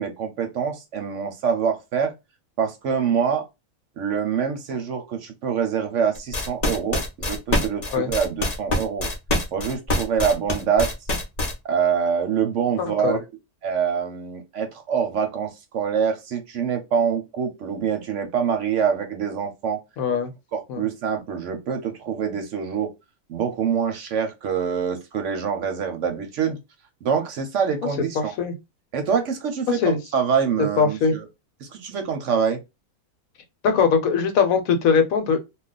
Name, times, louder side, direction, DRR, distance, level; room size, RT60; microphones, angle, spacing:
voice 1, 0.0-2.1 2.6-3.4 4.0-9.1 9.5-10.9 11.6-13.2 13.6-19.8 20.5-22.9 23.3-26.6 27.0-28.3 28.9-31.3 31.6-32.6, right 7 dB, 65° right, 0.9 m, -25 dB
sound 1, 6.1-11.5, left 1 dB, 40° left, 0.6 m, -24 dB
voice 2, 12.8-13.2 20.0-20.3 20.7-20.8 28.1-28.5 29.8-30.0 30.8-31.1 33.6-35.4, left 6 dB, 75° left, 1.0 m, -21 dB
2.3 x 2.2 x 3.8 m
omnidirectional pair, 1.5 m